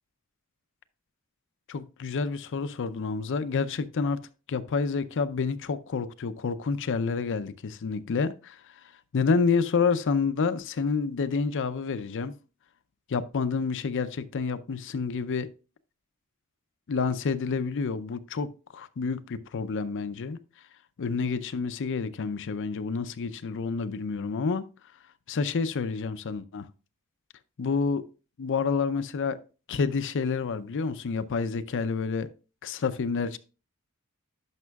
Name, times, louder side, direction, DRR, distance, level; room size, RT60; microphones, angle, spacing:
voice 1, 1.7-4.2 4.5-8.6 9.1-12.3 13.1-15.5 16.9-20.4 21.0-24.7 25.3-26.7 27.6-28.0 28.4-29.4 29.7-32.3 32.6-33.4, left 5 dB, 60° left, 0.5 m, -28 dB
10.5 x 6.0 x 2.3 m
head